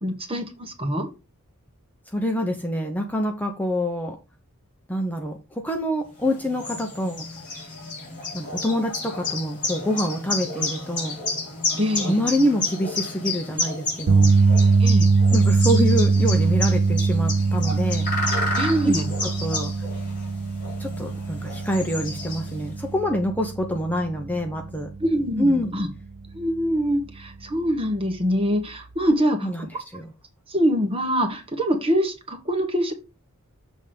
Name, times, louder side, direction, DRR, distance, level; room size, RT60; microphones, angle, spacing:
voice 1, 0.0-1.1 11.8-12.2 14.8-15.1 18.5-19.1 25.0-25.9 26.3-29.5 30.5-32.9, equal, 25° right, 4 dB, 1.4 m, -24 dB
voice 2, 2.1-4.2 4.9-7.3 8.3-11.2 12.1-14.3 15.3-18.1 18.8-18.9 19.2-19.7 20.8-24.9 25.4-25.7 29.4-30.1, equal, 10° left, 3 dB, 0.8 m, -26 dB
sound 1, 6.2-22.8, left 3 dB, 35° left, 3.7 m, -31 dB
sound 2, 14.1-26.3 26.7-26.9 29.1-29.2, right 4 dB, 85° right, 0.6 m, -22 dB
7.1 x 3.6 x 5.3 m, 0.27 s
head